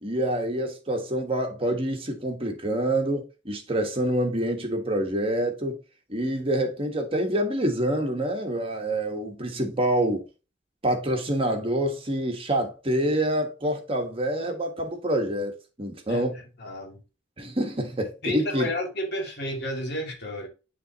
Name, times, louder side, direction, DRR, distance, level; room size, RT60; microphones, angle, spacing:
voice 1, 0.0-5.8 6.1-10.2 10.8-15.5 15.8-16.4 17.4-18.7, right 1 dB, 30° right, 1.3 m, -26 dB
voice 2, 16.6-17.0 18.2-20.5, left 1 dB, 60° left, 2.3 m, -31 dB
10.5 x 3.5 x 2.8 m
head